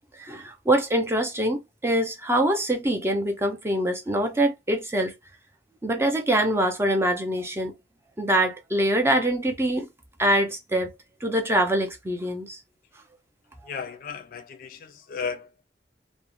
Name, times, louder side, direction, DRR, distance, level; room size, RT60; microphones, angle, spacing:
voice 1, 0.2-5.1 5.8-7.7 8.2-9.9 10.2-10.9 11.2-12.6, right 1 dB, 15° right, 0.5 m, -24 dB
voice 2, 13.6-15.6, left 5 dB, 50° left, 0.3 m, -35 dB
2.4 x 2.0 x 2.9 m
head